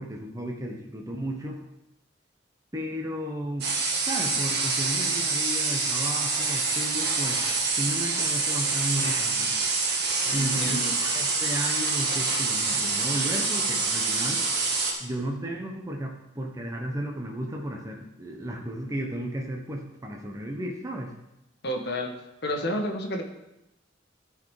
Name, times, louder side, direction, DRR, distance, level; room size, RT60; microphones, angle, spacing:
voice 1, 0.0-1.6 2.7-3.7 4.1-7.4 7.8-9.6 10.3-14.4 15.0-21.1, equal, 15° right, 0 dB, 1.1 m, -34 dB
sound 1, 3.6-14.9, right 4 dB, 60° right, 1.7 m, -26 dB
voice 2, 10.2-11.0 21.6-22.1 22.4-23.2, left 1 dB, 60° left, 2 dB, 1.4 m, -30 dB
13.0 x 4.9 x 4.9 m, 0.90 s
head